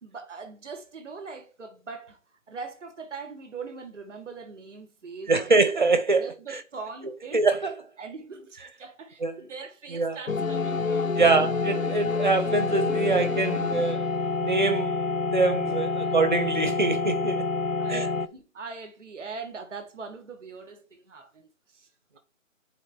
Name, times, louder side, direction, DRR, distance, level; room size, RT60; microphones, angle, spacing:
voice 1, 0.0-2.2 2.5-5.7 6.2-7.4 8.0-11.5 16.0-16.1 17.8-21.9, right 4 dB, ahead, 0.7 m, -41 dB
voice 2, 5.3-6.6 7.3-7.7 9.2-9.3 9.9-10.2 11.2-14.0 14.4-15.0 15.3-17.5 17.9-18.1, right 3 dB, 35° right, 0.6 m, -24 dB
sound 1, 10.3-18.3, left 4 dB, 80° left, 0.8 m, -27 dB
8.7 x 3.9 x 3.4 m
hypercardioid pair, 160°, 40 cm